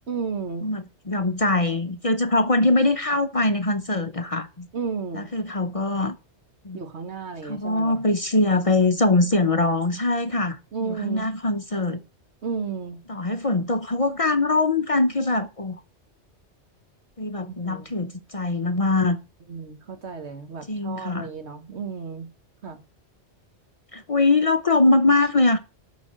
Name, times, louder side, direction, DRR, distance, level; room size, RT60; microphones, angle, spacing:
voice 1, 0.1-0.7 4.7-5.3 6.7-8.0 10.7-11.3 12.4-13.0 17.6-17.9 19.5-22.3 22.6-22.8, right 5 dB, 75° right, 1.7 m, -32 dB
voice 2, 0.6-4.7 5.1-6.2 6.6-6.8 7.4-12.0 13.1-15.8 17.2-19.2 20.7-21.3 23.9-25.6, left 2 dB, 35° left, 0.7 m, -22 dB
8.5 x 5.8 x 7.6 m
omnidirectional pair, 1.2 m